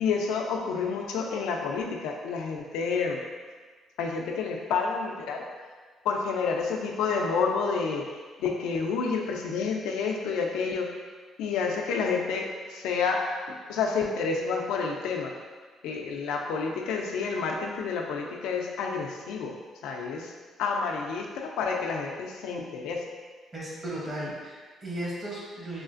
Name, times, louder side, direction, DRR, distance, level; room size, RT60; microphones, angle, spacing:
voice 1, 0.0-3.2 4.0-5.5 6.0-8.0 8.4-10.9 11.4-13.2 13.7-15.3 15.8-19.5 19.8-20.3 20.6-23.0, left 5 dB, 90° left, 1 dB, 0.3 m, -29 dB
voice 2, 23.5-25.8, right 1 dB, 30° right, -5 dB, 0.8 m, -35 dB
3.1 x 2.4 x 2.4 m, 1.5 s
cardioid pair, 105°, 0 cm